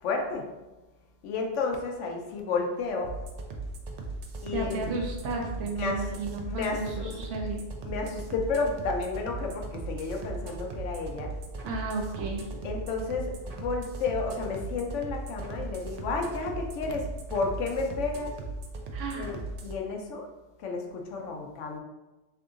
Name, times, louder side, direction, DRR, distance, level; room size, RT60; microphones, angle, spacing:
voice 1, 0.0-0.5 1.2-3.1 4.4-4.9 5.6-6.2 6.5-7.2 7.8-11.3 12.6-18.3 19.1-20.3 20.6-21.8, left 4 dB, 90° left, 2 dB, 1.0 m, -32 dB
sound 1, 3.0-19.7, right 2 dB, 60° right, 0.4 m, -38 dB
voice 2, 4.5-7.6 11.6-12.5 18.9-19.3, right 3 dB, 90° right, 0 dB, 0.9 m, -33 dB
3.7 x 3.4 x 2.4 m, 1.1 s
omnidirectional pair, 1.2 m